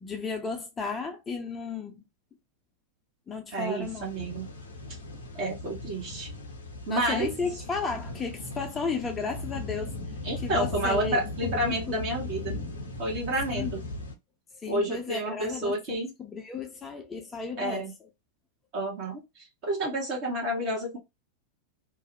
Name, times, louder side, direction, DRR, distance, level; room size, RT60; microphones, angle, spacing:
voice 1, 0.0-2.0 3.3-4.1 6.9-9.9 10.4-11.2 11.6-12.1 13.5-13.7 14.6-17.9, left 5 dB, 20° left, 0.4 m, -34 dB
voice 2, 3.5-4.5 5.3-6.3 6.9-7.3 10.2-12.5 13.0-13.8 14.7-16.1 17.6-17.9 18.7-21.0, right 1 dB, 40° right, 0.8 m, -30 dB
sound 1, 3.8-14.2, left 2 dB, 70° left, 0.6 m, -38 dB
2.4 x 2.0 x 2.5 m
figure-of-eight pair, 90°, 0 cm